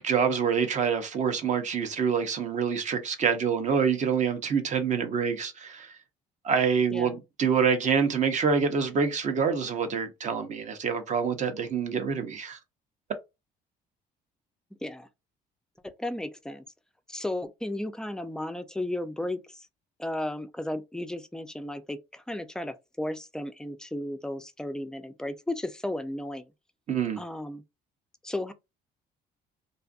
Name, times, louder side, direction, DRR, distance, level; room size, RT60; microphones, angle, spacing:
voice 1, 0.0-5.9 6.4-12.6 26.9-27.2, right 6 dB, 45° right, 0.6 m, -26 dB
voice 2, 16.0-16.6 17.1-19.7 20.0-26.5 27.2-27.6 28.2-28.5, left 1 dB, 5° left, 0.3 m, -34 dB
2.5 x 2.4 x 2.3 m
cardioid pair, 110°, 17 cm